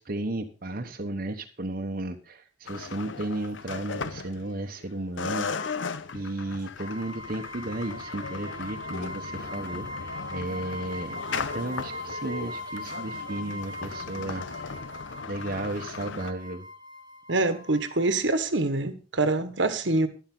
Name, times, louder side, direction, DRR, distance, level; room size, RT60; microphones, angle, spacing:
voice 1, 0.0-5.5 6.1-9.9 10.3-14.7 15.3-16.7, right 1 dB, 45° right, 1.1 m, -34 dB
sound 1, 2.7-4.8 5.2-16.3, left 4 dB, 75° left, 0.9 m, -37 dB
sound 2, 6.8-18.2, left 1 dB, 25° right, 1.3 m, -40 dB
voice 2, 17.3-20.1, right 2 dB, 70° right, 1.4 m, -25 dB
12.0 x 11.5 x 3.8 m
head